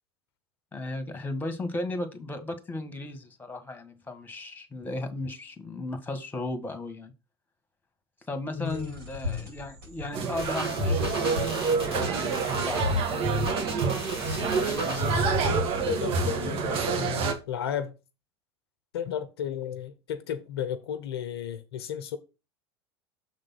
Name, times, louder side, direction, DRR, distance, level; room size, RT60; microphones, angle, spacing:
voice 1, 0.7-7.1 8.3-15.0, left 2 dB, 15° left, 1.5 m, -36 dB
voice 2, 8.5-9.0 15.9-17.9 18.9-22.2, left 9 dB, 75° left, 0.7 m, -33 dB
sound 1, 8.6-17.1, left 3 dB, 70° right, 4.2 m, -42 dB
sound 2, 10.1-17.3, right 5 dB, 45° right, 1.6 m, -28 dB
sound 3, 10.4-15.7, equal, 90° right, 3.4 m, -31 dB
6.8 x 3.7 x 5.6 m
hypercardioid pair, 80°, 13 cm